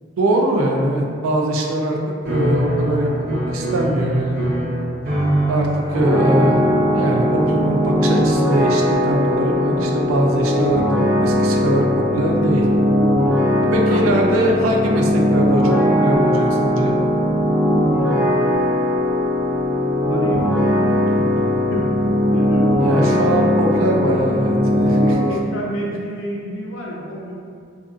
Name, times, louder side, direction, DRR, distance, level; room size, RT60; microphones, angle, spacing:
voice 1, 0.2-2.0 2.3-4.5 5.5-6.6 6.9-10.8 11.2-11.8 12.1-12.7 13.7-15.6 16.0-16.9 22.8-25.2, right 1 dB, 90° right, 0 dB, 0.4 m, -21 dB
sound 1, 2.2-10.6, equal, 45° right, 0.8 m, -26 dB
sound 2, 5.9-25.1, left 1 dB, 5° right, 0.3 m, -18 dB
voice 2, 13.8-14.2 20.1-21.4 21.7-21.9 22.3-22.7 25.3-27.4, equal, 75° left, -2 dB, 0.5 m, -28 dB
2.5 x 2.4 x 2.4 m, 2.2 s
head